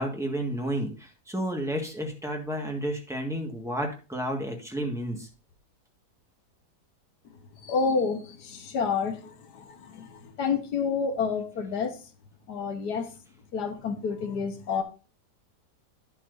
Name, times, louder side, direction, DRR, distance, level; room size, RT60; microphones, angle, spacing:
voice 1, 0.0-5.3, right 1 dB, ahead, 1.5 m, -31 dB
voice 2, 7.6-9.2 9.9-10.1 10.4-11.9 12.5-13.1 13.5-14.8, left 5 dB, 70° left, 1.5 m, -28 dB
10.0 x 7.4 x 2.6 m
omnidirectional pair, 1.8 m